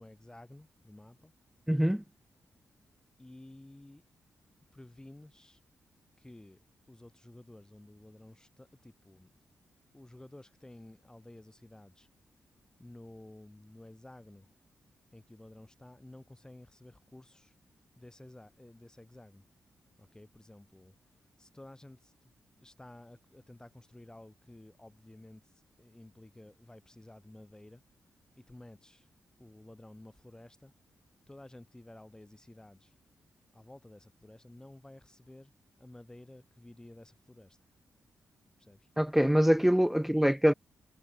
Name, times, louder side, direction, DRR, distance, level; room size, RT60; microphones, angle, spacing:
voice 1, 0.0-1.3 3.2-4.0 4.7-5.6 6.2-6.6 6.9-9.3 9.9-12.1 12.8-14.5 15.1-17.5 17.9-19.4 20.0-20.9 21.4-27.8 28.3-29.1 29.4-30.7 31.3-32.9 33.5-35.5 35.8-37.6 38.6-38.9, left 1 dB, 15° left, 3.4 m, -53 dB
voice 2, 1.7-2.0 39.0-40.5, equal, 5° right, 0.3 m, -24 dB
cardioid pair, 75°, 5 cm